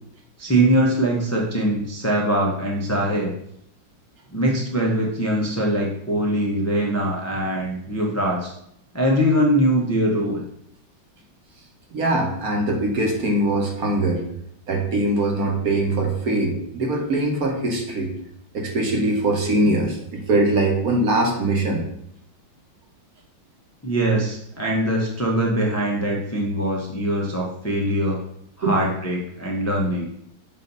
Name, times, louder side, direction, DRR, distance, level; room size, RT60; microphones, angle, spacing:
voice 1, 0.4-3.3 4.3-8.5 8.9-10.4 23.8-28.2 28.6-30.1, right 1 dB, 25° left, -2 dB, 0.3 m, -22 dB
voice 2, 11.9-14.2 14.7-18.1 18.5-21.8 28.6-28.8, right 2 dB, 50° right, 1 dB, 1.4 m, -22 dB
7.4 x 2.7 x 5.3 m, 0.72 s
omnidirectional pair, 2.2 m